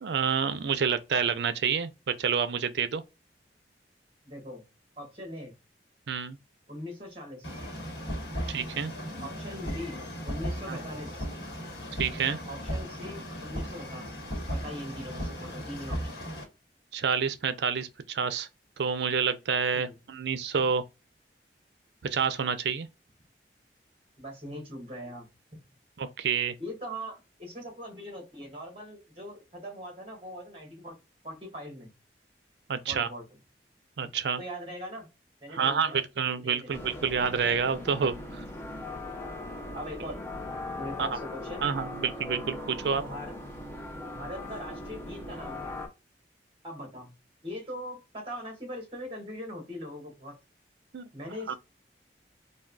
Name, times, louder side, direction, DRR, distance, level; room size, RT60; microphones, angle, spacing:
voice 1, 0.0-3.0 6.1-6.4 8.5-8.9 10.7-10.8 12.0-12.4 16.9-18.5 18.8-20.8 22.0-22.9 26.0-26.5 32.7-33.1 34.0-34.4 35.5-38.4 41.0-41.2 41.6-43.0 50.9-51.1 51.5-51.6, right 6 dB, 75° right, 0.4 m, -28 dB
voice 2, 4.2-4.6 5.0-5.5 6.7-7.6 9.2-11.3 12.4-14.2 14.5-16.2 19.7-20.0 24.2-25.6 26.6-30.9 31.2-31.9 32.9-33.2 34.4-35.1 35.4-36.0 36.4-36.7 39.7-40.2 40.7-41.6 42.8-43.3 44.1-45.7 46.6-47.1 47.4-50.3 51.1-51.6, equal, 30° right, 1.4 m, -41 dB
sound 1, 7.4-16.4, equal, 65° left, 1.2 m, -36 dB
sound 2, 36.7-45.9, left 2 dB, 15° left, 0.5 m, -39 dB
3.4 x 2.2 x 2.3 m
head